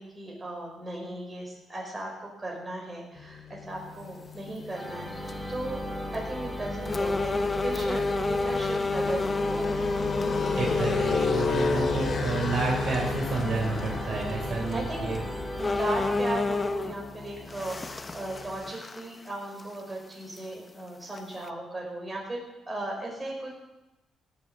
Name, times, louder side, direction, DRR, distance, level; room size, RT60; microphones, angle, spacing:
voice 1, 0.0-5.8 6.1-9.9 10.2-12.2 14.4-15.2 15.6-23.6, right 2 dB, 25° right, -1 dB, 5.2 m, -37 dB
sound 1, 3.2-18.7, left 4 dB, 45° left, 2.3 m, -34 dB
sound 2, 4.5-4.6 5.1-5.5 6.1-6.2 6.9-11.5 12.1-12.2 14.6-14.7 15.2-15.3 15.6-17.0 17.5-19.3 19.6-19.7 20.4-20.5 21.1-21.5, left 3 dB, 25° left, 0.7 m, -29 dB
sound 3, 4.7-16.7, equal, 5° right, 1.7 m, -37 dB
voice 2, 10.6-15.2, right 4 dB, 60° right, -1 dB, 3.6 m, -30 dB
17.5 x 7.4 x 6.8 m, 0.99 s
cardioid pair, 90°, 0 cm